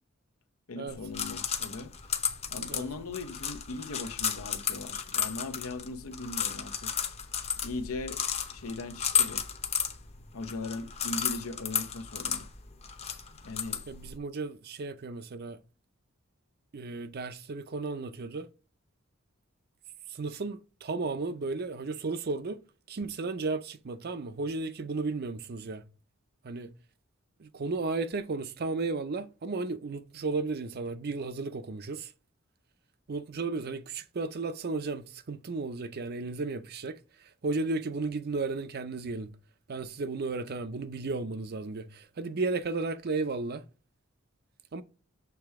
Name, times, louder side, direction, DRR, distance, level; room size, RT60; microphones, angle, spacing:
voice 1, 0.7-1.9 2.5-6.9 7.6-8.2 8.5-9.5 10.3-12.5 13.4-13.8, left 3 dB, 85° left, 0.8 m, -39 dB
sound 1, 0.9-14.2, left 7 dB, 30° left, 0.8 m, -33 dB
voice 2, 13.9-15.6 16.7-18.5 20.1-22.6 22.9-25.8 26.4-26.7 27.4-32.1 33.1-39.3 39.7-43.7 44.7-44.8, right 3 dB, 50° right, 0.5 m, -34 dB
6.9 x 3.3 x 4.6 m
head